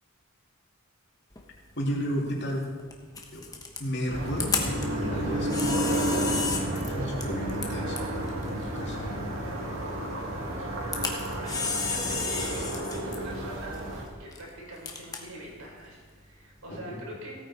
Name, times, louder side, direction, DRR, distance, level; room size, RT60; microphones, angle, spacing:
Camera, 1.3-16.8, left 4 dB, 15° left, 1.2 m, -36 dB
voice 1, 1.8-2.7 3.3-3.4 3.8-8.0 8.4-9.3 16.7-17.0, equal, 50° left, -2 dB, 2.7 m, -33 dB
sound 1, 4.1-14.0, right 1 dB, 60° right, 2.3 m, -31 dB
voice 2, 11.1-17.4, right 1 dB, 80° right, -2 dB, 4.5 m, -44 dB
17.0 x 9.3 x 4.3 m, 1.5 s
head